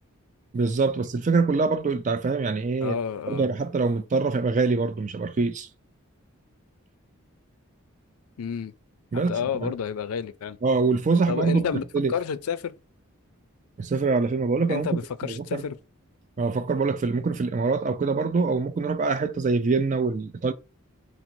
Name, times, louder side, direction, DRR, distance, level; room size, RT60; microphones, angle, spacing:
voice 1, 0.5-3.0 3.3-5.7 9.1-9.7 10.6-11.7 11.9-12.1 13.8-15.6 16.4-20.5, right 4 dB, 35° right, 0.3 m, -24 dB
voice 2, 2.8-3.5 8.4-8.7 9.1-10.6 11.3-11.8 12.1-12.7 14.7-15.8, left 7 dB, 90° left, 0.4 m, -30 dB
5.8 x 2.0 x 2.6 m
head